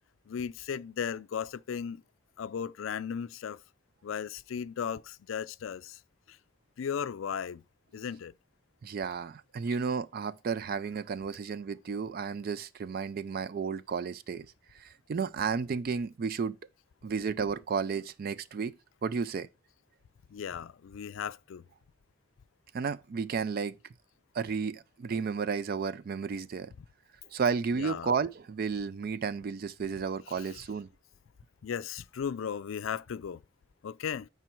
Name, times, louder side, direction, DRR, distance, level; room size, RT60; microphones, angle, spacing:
voice 1, 0.3-2.0 2.4-3.6 4.0-6.0 6.3-6.4 6.8-7.6 7.9-8.3 20.3-21.6 26.8-26.9 27.7-28.2 30.2-30.7 31.6-33.4 33.8-34.3, left 7 dB, 75° left, 0.4 m, -36 dB
voice 2, 8.8-14.5 14.7-16.6 17.0-18.7 19.0-19.5 22.7-23.8 24.3-26.7 27.3-30.9, right 5 dB, 45° right, 0.3 m, -32 dB
9.1 x 4.6 x 4.5 m
head